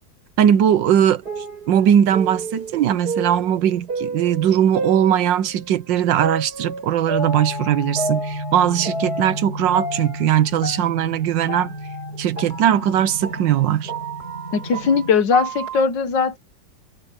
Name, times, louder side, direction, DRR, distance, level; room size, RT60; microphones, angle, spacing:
voice 1, 0.4-1.2 1.7-11.7 12.2-13.9, right 10 dB, 75° right, 1.5 m, -19 dB
sound 1, 0.9-5.7 6.2-9.5 9.7-15.8, right 2 dB, 55° right, 7.1 m, -31 dB
sound 2, 7.2-15.1, equal, 25° left, 5.5 m, -33 dB
voice 2, 14.5-16.4, left 5 dB, 65° left, 1.9 m, -19 dB
omnidirectional pair, 2.1 m